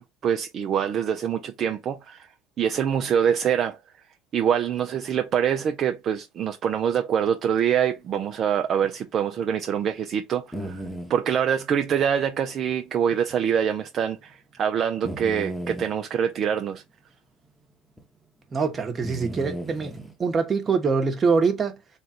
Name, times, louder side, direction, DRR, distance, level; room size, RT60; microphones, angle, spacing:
voice 1, 0.0-2.3 2.6-3.8 4.3-10.8 11.1-16.8, right 8 dB, 45° right, 0.4 m, -25 dB
sound 1, 8.8-8.9 9.4-9.5 10.5-11.1 13.1-13.2 13.5-13.6 15.0-15.9 18.0-18.1 19.0-20.1, right 1 dB, 5° left, 1.0 m, -35 dB
voice 2, 18.5-21.8, right 5 dB, 30° right, 1.1 m, -24 dB
3.3 x 2.4 x 4.2 m
hypercardioid pair, 80°, 0 cm